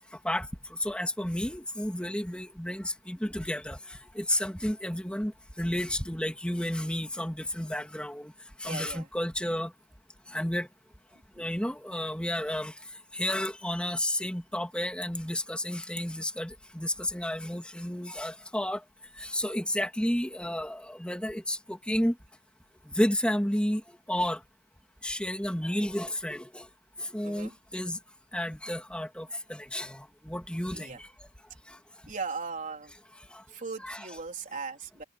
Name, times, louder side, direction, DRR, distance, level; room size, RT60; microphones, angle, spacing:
voice 1, 0.8-5.3 5.6-8.3 8.6-9.7 10.3-10.7 11.4-12.7 13.1-18.8 19.2-22.1 22.9-23.8 24.1-24.4 25.0-26.7 27.0-28.0 28.3-31.1 31.7-31.8 33.3-33.4 33.8-34.0, left 1 dB, 5° left, 2.6 m, -31 dB
voice 2, 8.7-9.1 11.1-11.6 27.2-27.6 30.7-31.0 32.1-32.9 33.5-35.0, right 4 dB, 40° right, 3.6 m, -38 dB
head